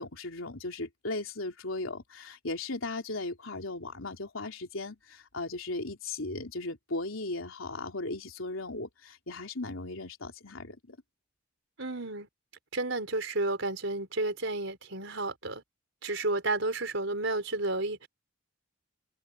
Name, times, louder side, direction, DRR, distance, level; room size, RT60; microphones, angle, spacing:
voice 1, 0.0-11.0, left 2 dB, 80° left, 3.3 m, -37 dB
voice 2, 11.8-12.3 12.7-15.6 16.0-18.1, right 2 dB, 65° right, 4.5 m, -31 dB
head